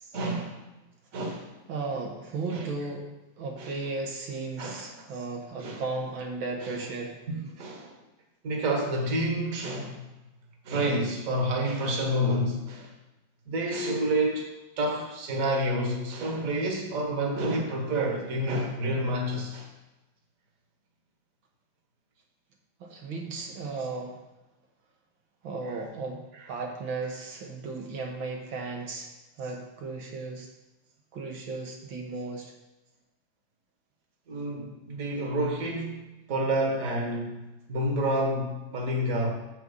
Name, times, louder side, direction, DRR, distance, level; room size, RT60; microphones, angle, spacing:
voice 1, 0.1-0.6 1.1-1.5 2.5-2.7 3.6-3.7 4.6-5.1 5.6-5.8 7.3-7.9 8.4-10.1 10.7-12.9 13.5-19.7 25.7-25.8 34.3-37.4 37.7-39.3, right 1 dB, 45° right, 2 dB, 1.7 m, -29 dB
voice 2, 1.7-3.1 3.4-7.2 22.8-24.2 25.4-29.1 29.4-30.5 31.1-32.5, right 3 dB, 80° right, 1 dB, 2.2 m, -35 dB
7.6 x 6.8 x 5.5 m, 1.0 s
omnidirectional pair, 2.1 m